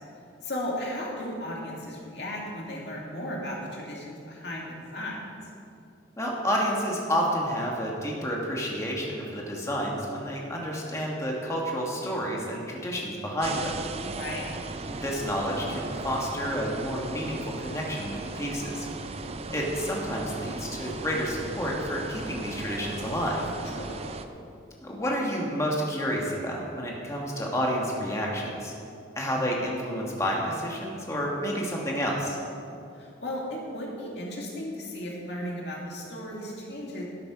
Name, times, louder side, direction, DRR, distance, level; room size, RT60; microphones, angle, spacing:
voice 1, 0.4-4.7 4.9-5.2 14.1-14.5 23.7-24.1 32.9-37.0, left 1 dB, 60° left, -3 dB, 2.6 m, -35 dB
voice 2, 6.2-13.8 14.9-18.9 19.5-23.4 24.8-28.7 29.2-32.4, equal, 15° left, -2 dB, 1.7 m, -30 dB
sound 1, 13.4-24.3, right 3 dB, 30° right, 0.5 m, -37 dB
12.0 x 8.8 x 5.9 m, 2.6 s
head